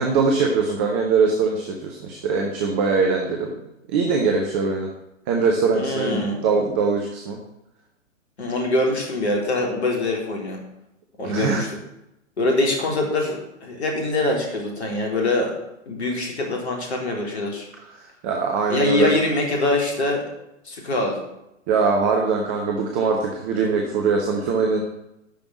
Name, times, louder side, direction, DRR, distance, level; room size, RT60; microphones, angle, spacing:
voice 1, 0.0-3.5 3.9-4.9 5.3-7.4 11.2-11.6 18.0-19.1 21.7-24.8, right 4 dB, 10° right, 1 dB, 0.4 m, -22 dB
voice 2, 5.7-6.5 8.4-10.6 11.2-11.7 12.4-15.5 15.9-17.7 18.7-20.2 20.6-21.2, left 2 dB, 55° left, 0 dB, 3.7 m, -24 dB
11.5 x 5.3 x 8.1 m, 0.87 s
figure-of-eight pair, 120°, 38 cm